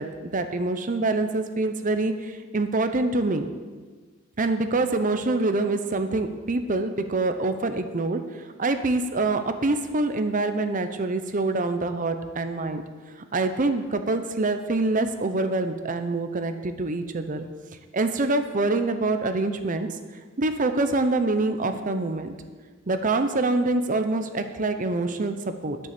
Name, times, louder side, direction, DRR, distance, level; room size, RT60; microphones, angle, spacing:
voice 1, 0.0-3.5 4.4-8.2 8.6-12.8 13.3-17.4 17.9-19.9 20.4-22.3 22.9-25.8, right 2 dB, 40° right, 8 dB, 0.7 m, -25 dB
9.1 x 6.7 x 6.8 m, 1.5 s
head